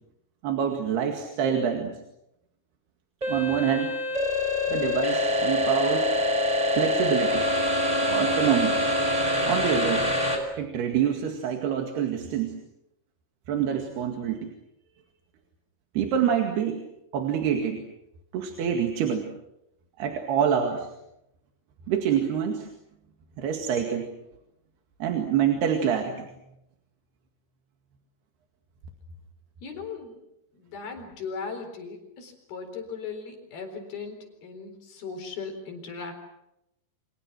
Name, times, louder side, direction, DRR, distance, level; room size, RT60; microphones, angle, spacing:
voice 1, 0.4-1.9 3.3-3.9 4.7-6.1 6.7-7.4 8.0-8.8 9.4-10.0 10.6-12.5 13.5-14.5 16.0-16.8 17.1-17.8 18.3-19.3 20.0-20.9 21.9-22.7 23.4-24.1 25.0-26.3, right 8 dB, 65° right, 3 dB, 4.0 m, -26 dB
sound 1, 3.2-10.4, left 1 dB, 10° right, 4.6 m, -25 dB
voice 2, 29.6-30.1 30.6-36.1, left 5 dB, 60° left, 6 dB, 5.9 m, -38 dB
30.0 x 26.5 x 6.2 m, 0.85 s
omnidirectional pair, 5.1 m